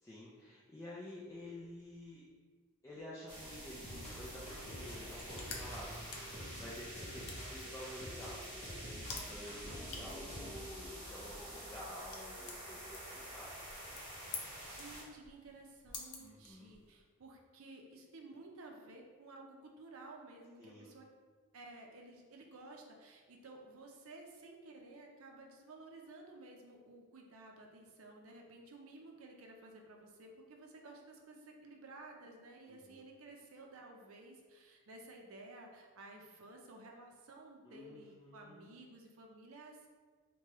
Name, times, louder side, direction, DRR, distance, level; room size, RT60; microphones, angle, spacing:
voice 1, 0.0-2.3 2.8-8.6 9.3-13.6 16.2-16.7 20.6-21.0 32.6-33.0 37.6-38.7, left 1 dB, 15° left, -7 dB, 0.4 m, -50 dB
sound 1, 3.3-15.0, equal, 20° right, 1.2 m, -48 dB
sound 2, 3.8-10.7, equal, 30° left, 0.8 m, -49 dB
sound 3, 4.9-17.0, left 4 dB, 80° left, 0.6 m, -52 dB
voice 2, 9.7-10.8 14.7-21.1 21.5-39.9, right 2 dB, 65° right, 1 dB, 0.5 m, -54 dB
4.6 x 2.2 x 2.9 m, 1.5 s
head